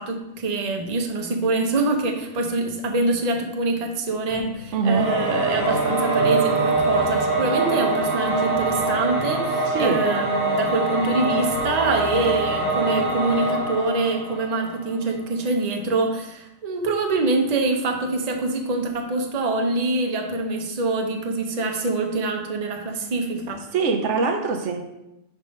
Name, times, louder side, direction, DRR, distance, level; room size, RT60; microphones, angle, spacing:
voice 1, 0.0-23.7, right 2 dB, 40° right, 2 dB, 0.8 m, -25 dB
sound 1, 4.3-13.8, left 4 dB, 75° left, 0.9 m, -39 dB
voice 2, 4.7-5.2 9.7-10.1 23.7-24.8, right 4 dB, 80° right, 5 dB, 1.0 m, -23 dB
Singing / Musical instrument, 4.9-14.9, right 3 dB, 10° right, 1.3 m, -24 dB
5.4 x 3.6 x 5.2 m, 0.89 s
omnidirectional pair, 1.2 m